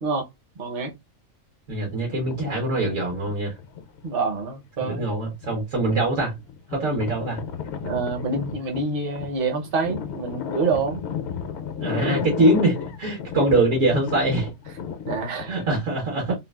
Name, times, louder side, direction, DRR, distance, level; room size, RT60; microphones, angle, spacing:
voice 1, 0.6-0.9 4.0-5.1 7.8-11.0 15.1-15.6, right 4 dB, 45° right, 0.9 m, -27 dB
voice 2, 1.7-3.5 4.8-6.3 6.7-7.4 11.8-14.5 15.5-16.3, right 2 dB, 70° right, 1.6 m, -23 dB
sound 1, 2.1-4.3 4.8-15.7, left 7 dB, 65° left, 0.8 m, -33 dB
3.8 x 2.3 x 2.3 m
omnidirectional pair, 1.4 m